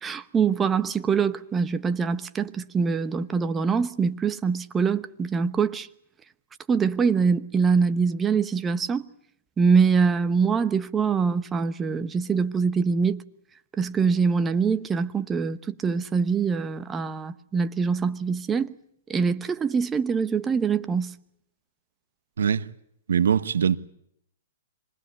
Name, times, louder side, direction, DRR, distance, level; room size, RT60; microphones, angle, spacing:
voice 1, 0.0-5.9 6.7-9.1 9.6-13.2 13.8-18.7 19.1-21.1, right 5 dB, 15° right, 1.0 m, -24 dB
voice 2, 22.4-22.7 23.1-23.8, right 7 dB, 80° right, 1.2 m, -22 dB
26.0 x 20.5 x 8.3 m
hypercardioid pair, 135°, 0 cm